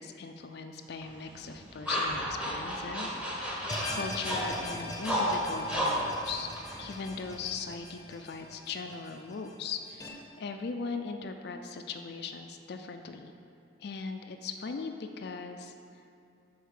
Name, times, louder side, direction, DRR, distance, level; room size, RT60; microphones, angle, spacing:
voice 1, 0.0-6.5 6.8-13.3 13.8-15.7, left 4 dB, 55° left, 6 dB, 0.4 m, -39 dB
sound 1, 1.0-7.5, equal, 5° right, 1.2 m, -33 dB
sound 2, 3.7-10.1, left 1 dB, 20° left, 0.8 m, -41 dB
6.7 x 4.7 x 6.5 m, 2.6 s
head